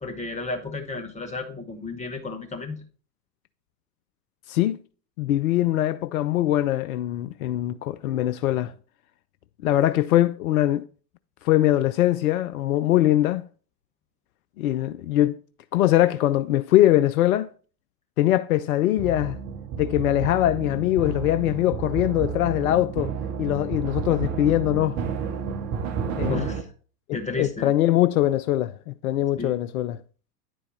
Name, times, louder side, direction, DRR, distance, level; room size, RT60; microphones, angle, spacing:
voice 1, 0.0-2.8 26.3-26.7 27.1-27.7 29.4-29.6, left 3 dB, 15° left, 1.4 m, -33 dB
voice 2, 4.5-4.8 5.2-8.7 9.6-10.8 11.4-13.4 14.6-15.4 15.7-17.5 18.2-19.4 19.8-23.1 23.4-25.0 26.2-26.5 27.4-30.0, left 14 dB, 60° left, 0.5 m, -22 dB
sound 1, 19.0-26.6, right 7 dB, 35° right, 1.1 m, -31 dB
9.7 x 4.6 x 4.2 m
figure-of-eight pair, 95°, 49 cm